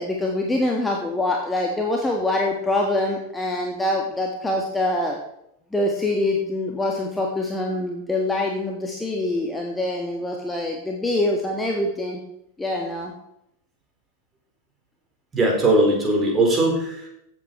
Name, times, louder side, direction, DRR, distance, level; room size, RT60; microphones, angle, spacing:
voice 1, 0.0-5.2 5.7-12.2 12.6-13.1, left 1 dB, 10° left, 0 dB, 1.8 m, -24 dB
voice 2, 15.3-17.1, right 1 dB, 20° right, 1 dB, 4.2 m, -19 dB
15.0 x 8.4 x 4.7 m, 0.77 s
figure-of-eight pair, 90°, 0 cm